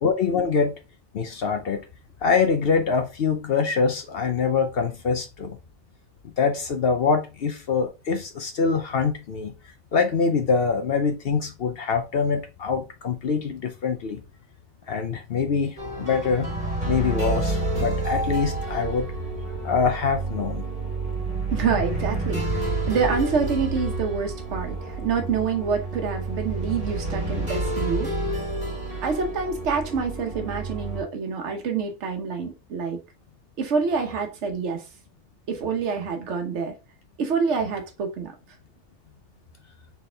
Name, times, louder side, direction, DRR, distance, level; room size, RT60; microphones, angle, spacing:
voice 1, 0.0-0.7 1.1-1.8 2.2-5.6 6.4-9.5 9.9-14.2 14.9-16.5 16.9-19.1 19.6-20.6, left 5 dB, 60° left, 0.8 m, -24 dB
sound 1, 15.8-31.0, right 2 dB, 40° right, 1.6 m, -29 dB
voice 2, 21.5-28.1 29.0-33.0 33.6-34.8 35.5-36.7 37.2-38.3, right 5 dB, 75° right, 1.1 m, -27 dB
4.1 x 3.5 x 3.3 m
omnidirectional pair, 1.2 m